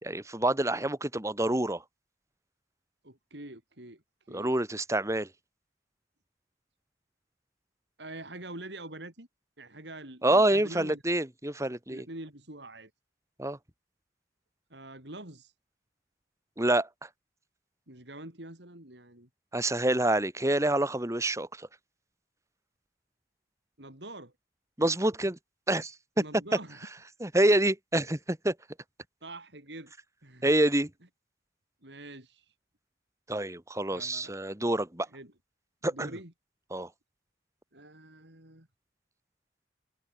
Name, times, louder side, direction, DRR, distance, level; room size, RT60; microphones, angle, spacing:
voice 1, 0.0-1.8 4.3-5.3 10.2-12.1 13.4-13.6 16.6-17.1 19.5-21.7 24.8-25.4 25.7-25.9 27.2-28.5 30.4-30.9 33.3-35.1 35.8-36.1 36.7-36.9, right 1 dB, 15° right, 1.9 m, -27 dB
voice 2, 3.0-4.0 4.3-4.5 8.0-9.3 9.6-11.0 11.9-12.9 14.7-15.5 17.9-19.3 23.8-24.3 26.2-26.9 29.2-29.9 30.2-30.5 31.8-32.5 33.9-34.3 35.1-35.3 35.8-36.3 37.7-38.7, right 1 dB, 65° right, 5.5 m, -45 dB
head